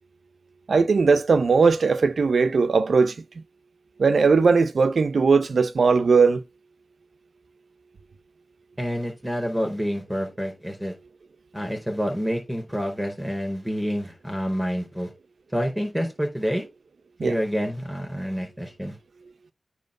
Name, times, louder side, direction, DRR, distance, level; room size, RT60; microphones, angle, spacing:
voice 1, 0.7-3.1 4.0-6.4 17.2-17.4, right 4 dB, 80° right, 0.8 m, -19 dB
voice 2, 8.8-10.9 11.5-15.1 15.5-16.6 17.2-19.0, equal, 5° right, 4.6 m, -28 dB
9.2 x 3.2 x 6.6 m
wide cardioid pair, 75°, 0 cm